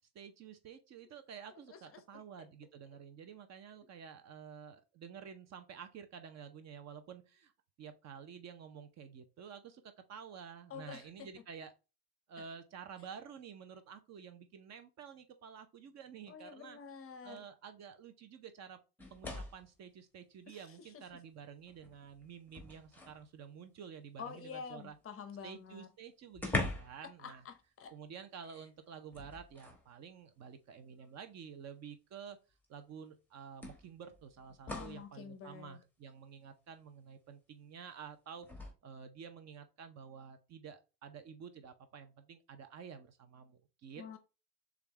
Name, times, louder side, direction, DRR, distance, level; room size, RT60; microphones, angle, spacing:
voice 1, 0.1-7.5 7.8-11.7 12.3-16.8 17.2-18.8 19.1-25.0 25.4-27.4 27.9-32.4 32.7-38.5 38.8-44.2, right 7 dB, 35° right, 0.7 m, -50 dB
voice 2, 1.7-2.2 10.7-11.4 12.4-12.5 16.3-17.4 20.5-21.0 24.2-25.9 27.0-27.9 34.7-35.8 44.0-44.2, left 7 dB, 30° left, 0.7 m, -48 dB
sound 1, 19.0-19.7 21.1-21.2 21.7-23.3 25.3-25.4 25.7-25.8 26.3-27.1 27.4-27.6 29.1-29.9 31.0-31.1 32.6-32.7 33.6-35.1 38.4-38.7, left 2 dB, 5° left, 1.1 m, -41 dB
6.6 x 2.5 x 3.1 m
hypercardioid pair, 80°, 49 cm